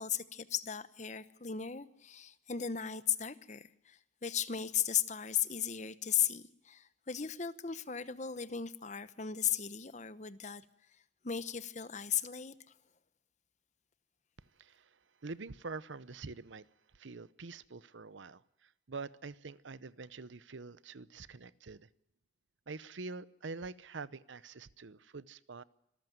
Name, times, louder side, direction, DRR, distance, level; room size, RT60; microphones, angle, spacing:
voice 1, 0.0-10.6 11.2-12.5, left 9 dB, 40° left, 1.0 m, -36 dB
voice 2, 15.2-16.6 16.9-21.9 22.7-25.6, right 4 dB, 80° right, 0.8 m, -46 dB
25.5 x 14.0 x 9.4 m
head